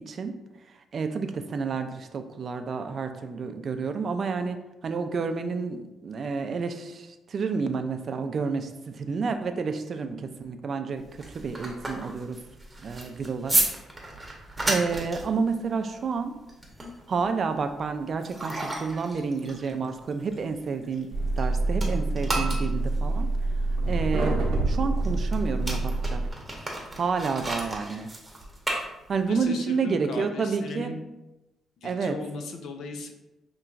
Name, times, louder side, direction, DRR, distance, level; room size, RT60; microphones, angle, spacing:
voice 1, 0.9-4.6 4.8-12.4 12.8-13.6 14.3-14.4 14.6-16.3 17.1-23.3 23.9-26.3 26.9-28.1 29.1-30.9 31.8-32.2, right 5 dB, 50° right, 7 dB, 0.4 m, -30 dB
sound 1, 11.0-21.5 21.7-29.4, right 2 dB, 15° right, 0.9 m, -33 dB
sound 2, 21.1-26.3, right 2 dB, 85° right, 0.7 m, -26 dB
voice 2, 29.2-31.0 31.8-33.1, left 3 dB, 80° left, 5 dB, 0.5 m, -37 dB
5.6 x 3.0 x 2.5 m, 1.0 s
cardioid pair, 100°, 0 cm